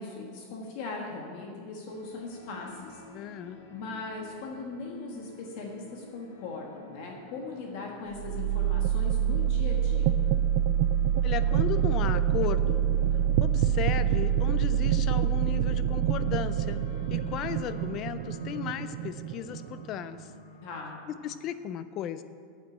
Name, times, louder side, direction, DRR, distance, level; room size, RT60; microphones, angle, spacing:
voice 1, 0.0-3.4 3.7-10.1 20.6-20.9, left 3 dB, 45° left, 0 dB, 1.4 m, -39 dB
sound 1, 1.9-21.1, left 1 dB, 65° left, 1.6 m, -51 dB
voice 2, 3.1-3.6 11.2-12.9 13.4-16.8 17.1-20.3 21.2-22.2, left 10 dB, 30° left, 12 dB, 0.4 m, -35 dB
sound 2, 8.2-20.1, right 10 dB, 45° right, 0.4 m, -26 dB
8.3 x 8.2 x 8.7 m, 2.3 s
supercardioid pair, 180°, 0 cm